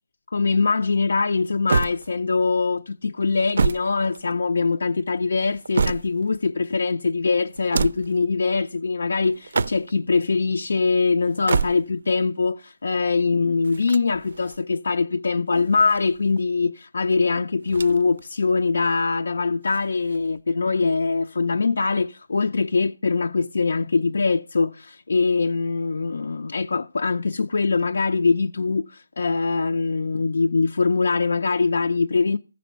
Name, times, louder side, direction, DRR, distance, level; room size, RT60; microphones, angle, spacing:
voice 1, 0.3-32.4, left 4 dB, 60° left, 0.4 m, -23 dB
sound 1, 1.7-2.5 3.3-4.7 5.3-6.4 7.5-8.2 9.3-10.1 11.3-12.1 13.6-14.6 15.5-16.4 17.6-18.2 18.5-18.6 19.6-20.4, right 4 dB, 50° right, 0.4 m, -28 dB
14.0 x 5.2 x 6.6 m
figure-of-eight pair, 170°, 0 cm